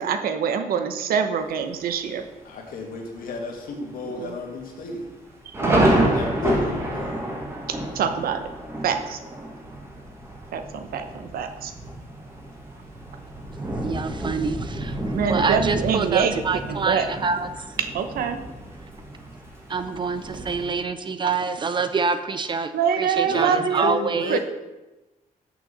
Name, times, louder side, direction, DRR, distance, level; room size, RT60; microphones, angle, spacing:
voice 1, 0.0-2.2 4.1-4.4 5.4-6.2 7.7-8.4 8.8-9.2 10.5-11.7 15.1-16.4 16.7-17.1 17.8-18.4 22.7-24.0 24.3-24.4, right 7 dB, 85° right, 8 dB, 0.9 m, -25 dB
Thunder, 1.4-2.0 2.5-2.6 2.9-3.3 3.7-3.8 4.5-20.7, right 1 dB, 15° right, 1.7 m, -29 dB
voice 2, 2.5-5.1 6.1-7.2 23.3-24.4, left 4 dB, 75° left, 1 dB, 2.0 m, -33 dB
voice 3, 13.8-15.0 15.3-17.7 19.7-22.7 23.0-24.4, right 4 dB, 30° right, 11 dB, 0.5 m, -26 dB
6.9 x 6.3 x 6.7 m, 1.1 s
cardioid pair, 145°, 15 cm